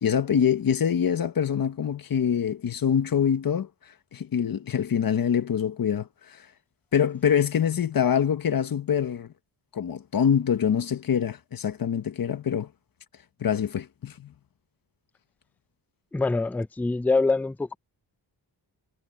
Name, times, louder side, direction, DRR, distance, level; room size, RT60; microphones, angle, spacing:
voice 1, 0.0-3.7 4.1-6.4 6.9-9.3 9.7-12.7 13.4-14.3, left 8 dB, 50° left, 1.3 m, -25 dB
voice 2, 16.1-17.8, left 3 dB, 5° left, 0.3 m, -24 dB
wide cardioid pair, 170°, 43 cm